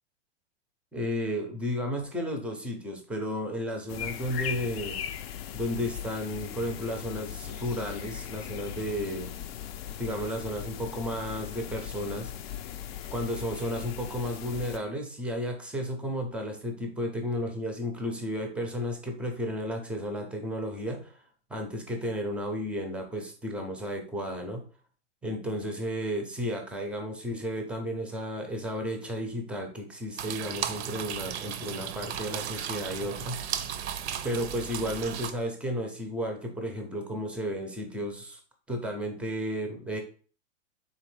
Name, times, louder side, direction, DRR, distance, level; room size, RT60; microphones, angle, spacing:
voice 1, 0.9-5.0 5.5-9.4 10.0-12.3 13.1-21.2 21.5-24.6 25.2-33.5 34.2-38.4 38.7-40.0, equal, 5° right, 3 dB, 0.4 m, -33 dB
sound 1, 3.9-14.8, left 10 dB, 55° left, 0.4 m, -39 dB
sound 2, 30.2-35.3, right 9 dB, 65° right, 0.5 m, -35 dB
3.8 x 3.1 x 3.1 m, 0.41 s
hypercardioid pair, 115°, 36 cm